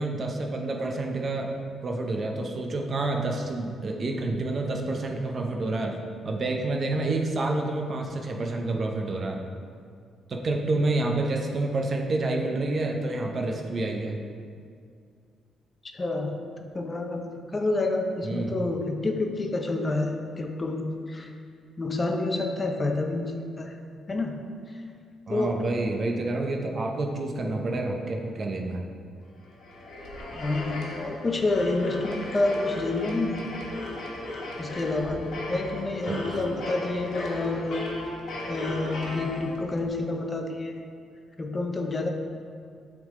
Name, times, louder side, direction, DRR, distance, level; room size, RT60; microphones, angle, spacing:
voice 1, 0.0-1.5 1.8-5.9 6.2-9.4 10.3-14.2 18.2-18.6 25.3-28.9 36.1-36.2, right 2 dB, 45° right, 2 dB, 0.7 m, -28 dB
voice 2, 15.9-21.3 21.8-23.8 24.1-24.8 25.3-25.7 30.4-33.5 34.6-38.0 38.5-40.8 41.4-42.1, left 2 dB, 30° left, 4 dB, 0.6 m, -29 dB
sound 1, 29.4-39.9, left 1 dB, 75° left, 1.2 m, -36 dB
7.7 x 3.8 x 3.7 m, 2.2 s
cardioid pair, 90°, 0 cm